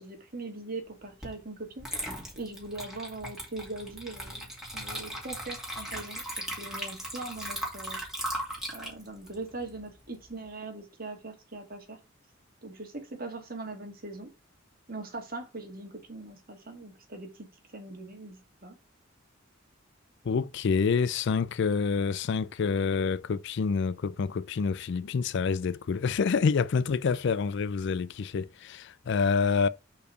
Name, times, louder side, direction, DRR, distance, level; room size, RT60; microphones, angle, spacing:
voice 1, 0.0-1.9 2.4-4.5 4.7-8.0 8.7-12.0 12.6-14.3 14.9-17.5 17.7-18.8, right 2 dB, 45° right, 2.0 m, -41 dB
Water / Liquid, 1.2-1.4 1.8-10.3, right 1 dB, ahead, 2.6 m, -38 dB
voice 2, 20.2-29.7, left 5 dB, 60° left, 0.4 m, -27 dB
5.5 x 4.5 x 6.2 m
head